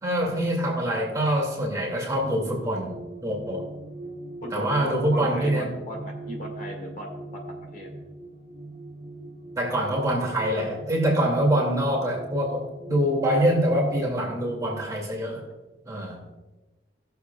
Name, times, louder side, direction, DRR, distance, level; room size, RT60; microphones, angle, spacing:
voice 1, 0.0-2.9 3.2-3.7 4.5-5.7 9.6-15.4 15.8-16.2, right 1 dB, 20° right, -2 dB, 2.4 m, -25 dB
sound 1, 2.1-14.9, right 2 dB, 40° right, 1.6 m, -41 dB
voice 2, 4.4-7.2 7.7-7.9, right 1 dB, 45° left, 0 dB, 1.9 m, -37 dB
19.0 x 7.0 x 2.4 m, 1.1 s
head